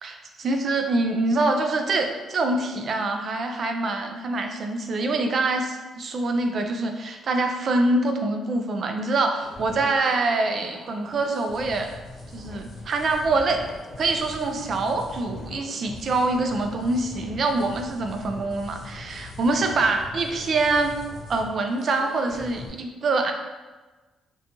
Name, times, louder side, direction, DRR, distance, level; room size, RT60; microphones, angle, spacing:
voice 1, 0.0-11.9 12.3-13.7 14.0-20.9 21.3-23.3, right 2 dB, 55° right, 4 dB, 0.3 m, -25 dB
sound 1, 9.4-22.7, left 2 dB, 65° left, 0.7 m, -42 dB
2.6 x 2.2 x 2.8 m, 1.2 s
cardioid pair, 90°, 0 cm